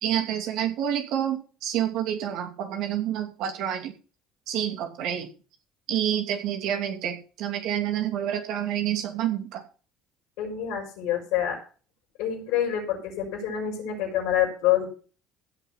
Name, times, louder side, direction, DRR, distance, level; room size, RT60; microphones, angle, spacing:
voice 1, 0.0-3.9 4.5-5.3 5.9-9.6, right 10 dB, 70° right, 5 dB, 2.7 m, -28 dB
voice 2, 10.4-11.6 12.2-14.9, left 10 dB, 70° left, -1 dB, 5.5 m, -26 dB
15.5 x 6.5 x 5.8 m, 0.37 s
hypercardioid pair, 65°, 0 cm